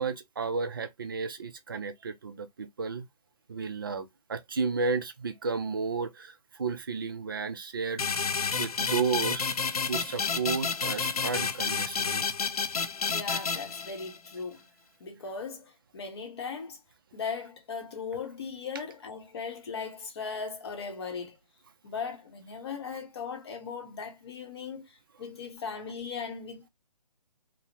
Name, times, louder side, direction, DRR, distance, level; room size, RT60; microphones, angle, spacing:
voice 1, 0.0-3.1 3.5-8.1 8.6-9.5 9.9-12.3, right 4 dB, 35° right, 0.4 m, -32 dB
sound 1, 8.0-14.3, left 5 dB, 65° left, 0.4 m, -30 dB
voice 2, 13.0-14.6 15.0-16.8 17.1-21.4 21.8-26.7, left 5 dB, 40° left, 0.8 m, -38 dB
2.8 x 2.0 x 2.8 m
figure-of-eight pair, 140°, 21 cm